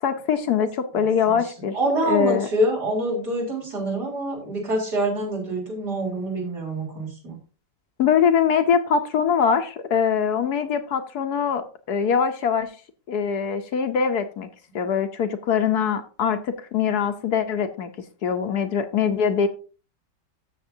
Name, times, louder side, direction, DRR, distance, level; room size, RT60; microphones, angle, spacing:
voice 1, 0.0-1.8 2.0-2.5 8.0-12.7 13.1-14.5 14.7-17.9 18.2-19.5, left 7 dB, 65° left, 8 dB, 1.2 m, -23 dB
voice 2, 1.3-7.3, right 1 dB, 65° right, -2 dB, 4.3 m, -26 dB
13.5 x 6.9 x 2.7 m, 0.37 s
omnidirectional pair, 1.9 m